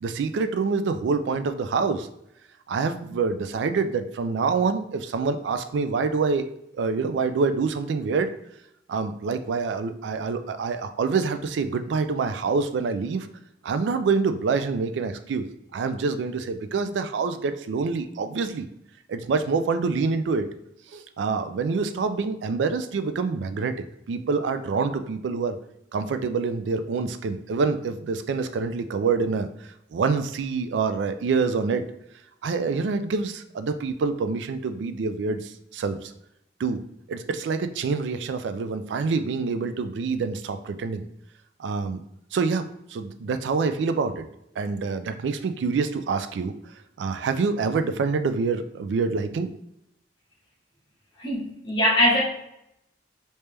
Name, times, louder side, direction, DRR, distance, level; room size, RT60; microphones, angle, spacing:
voice 1, 0.0-2.1 2.7-6.5 6.7-8.3 8.9-13.3 13.6-18.7 19.1-20.5 20.9-23.8 24.1-25.6 25.9-29.5 29.9-31.8 32.4-36.1 36.6-36.8 37.1-41.1 41.6-42.0 42.3-42.6 42.9-44.3 44.6-46.5 47.0-49.5, right 4 dB, 85° right, 10 dB, 0.3 m, -26 dB
voice 2, 51.2-52.2, left 1 dB, 30° left, -5 dB, 1.3 m, -21 dB
3.3 x 2.8 x 3.3 m, 0.81 s
head